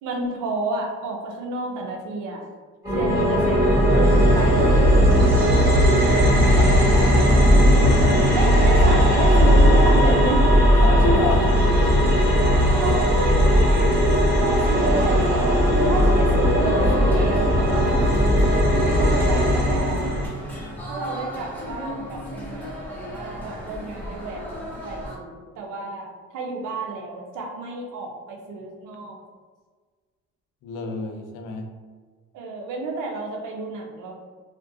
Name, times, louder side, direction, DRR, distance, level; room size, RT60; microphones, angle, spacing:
voice 1, 0.0-2.4 2.9-4.9 8.3-10.4 12.5-13.9 14.4-18.1 19.0-20.1 20.9-29.2 32.3-34.1, right 2 dB, 85° right, 0 dB, 0.6 m, -30 dB
sound 1, 2.8-20.3, equal, 10° right, 1.3 m, -17 dB
sound 2, 5.7-25.2, equal, 5° left, 0.7 m, -34 dB
voice 2, 6.3-7.5 10.8-11.5 30.6-31.7, left 3 dB, 90° left, 3 dB, 0.5 m, -28 dB
2.4 x 2.1 x 2.6 m, 1.5 s
cardioid pair, 90°, 30 cm